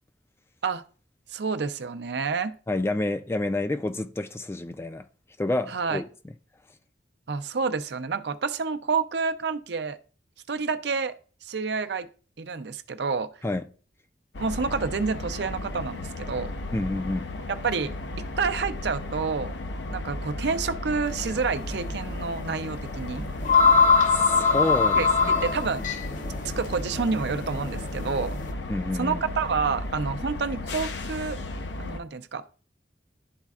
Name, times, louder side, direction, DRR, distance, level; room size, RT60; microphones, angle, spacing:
voice 1, 1.3-2.6 5.7-6.0 7.3-10.0 10.5-11.1 11.4-12.1 12.4-13.3 14.4-16.5 17.6-19.5 19.9-23.3 25.0-25.8 26.6-28.4 28.9-31.4 31.8-32.4, right 5 dB, 65° right, 0.5 m, -29 dB
voice 2, 2.7-5.1 5.4-6.1 13.4-13.7 16.7-17.3 24.1-25.4 28.7-29.2, left 2 dB, 15° left, 0.3 m, -28 dB
sound 1, 14.3-32.0, left 2 dB, 70° left, 0.7 m, -35 dB
sound 2, 21.1-21.3 21.7-21.8 22.9-23.0 23.2-28.5, left 5 dB, 45° left, 0.7 m, -23 dB
11.5 x 4.2 x 2.4 m
head